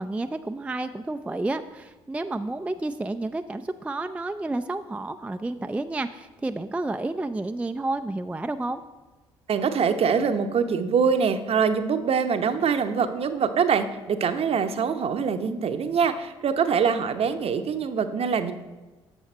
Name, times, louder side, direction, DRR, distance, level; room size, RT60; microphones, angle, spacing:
voice 1, 0.0-8.8, right 2 dB, 10° right, 8 dB, 0.4 m, -30 dB
voice 2, 9.5-18.5, right 6 dB, 45° right, 9 dB, 0.7 m, -24 dB
9.0 x 7.1 x 4.3 m, 1.2 s
hypercardioid pair, 50°, 14 cm